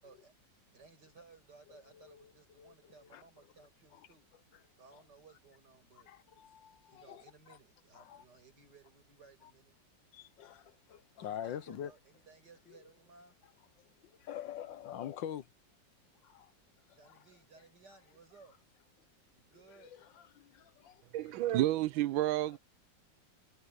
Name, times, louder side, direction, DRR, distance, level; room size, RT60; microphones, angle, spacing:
voice 1, 0.0-4.3 4.8-6.1 6.9-9.7 11.2-13.4 16.9-18.6 19.3-20.0, right 4 dB, 60° right, 6.9 m, -60 dB
voice 2, 1.9-2.3 2.6-3.2 3.9-4.0 4.9-5.0 6.1-7.2 7.5-7.6 7.9-8.2 10.1-11.9 12.7-12.8 14.1-15.5 16.2-16.5 16.9-17.2 19.8-21.6, left 10 dB, 75° left, 1.6 m, -46 dB
voice 3, 21.1-22.6, right 14 dB, 90° right, 1.4 m, -30 dB
omnidirectional pair, 2.1 m